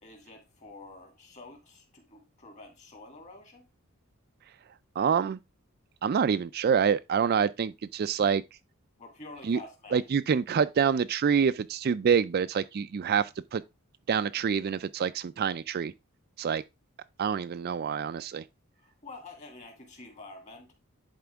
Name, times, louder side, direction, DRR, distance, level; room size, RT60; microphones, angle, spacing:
voice 1, 0.0-3.7 9.0-10.1 18.8-20.7, left 2 dB, 35° left, 2.4 m, -48 dB
voice 2, 5.0-5.4 6.0-8.4 9.4-9.6 9.9-13.6 14.1-15.9 16.4-16.6 17.2-18.4, right 7 dB, 45° right, 0.3 m, -26 dB
10.5 x 4.3 x 3.5 m
head